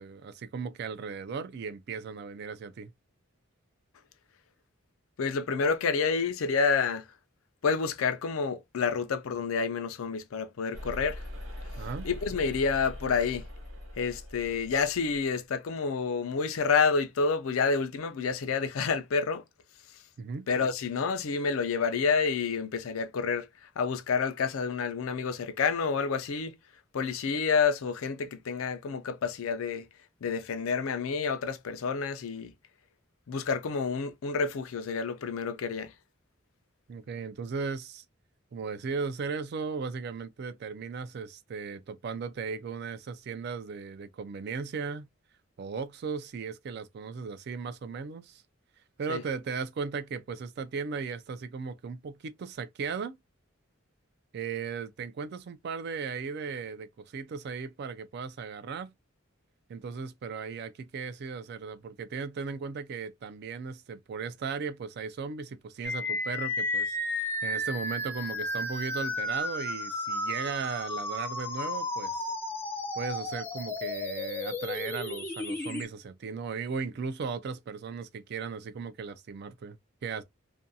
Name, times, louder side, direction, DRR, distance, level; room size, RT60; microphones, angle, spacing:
voice 1, 0.0-2.9 11.8-12.1 20.2-20.5 36.9-38.0 38.5-45.1 45.6-48.4 49.0-53.2 54.3-58.9 59.7-72.3 72.9-79.8 80.0-80.2, right 5 dB, 50° right, 0.3 m, -36 dB
voice 2, 5.2-7.1 7.6-11.2 12.0-13.5 14.0-19.4 20.5-23.5 23.8-26.6 26.9-29.9 30.2-32.5 33.3-35.9 49.1-49.2, left 5 dB, 85° left, 0.5 m, -29 dB
sound 1, 10.7-15.2, left 1 dB, 70° right, 0.9 m, -42 dB
sound 2, 65.8-75.8, left 2 dB, 10° left, 0.5 m, -33 dB
2.5 x 2.2 x 2.6 m
head